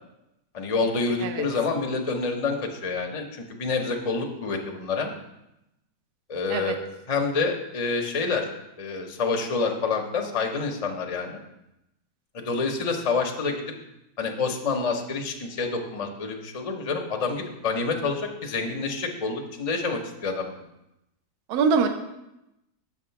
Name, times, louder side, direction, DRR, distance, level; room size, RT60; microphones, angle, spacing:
voice 1, 0.5-5.1 6.3-6.8 7.1-8.5 8.8-11.4 12.3-13.7 14.2-20.6, left 4 dB, 45° left, 3 dB, 0.4 m, -28 dB
voice 2, 21.5-21.9, right 5 dB, 80° right, 5 dB, 1.1 m, -23 dB
7.1 x 3.6 x 5.6 m, 0.90 s
omnidirectional pair, 1.6 m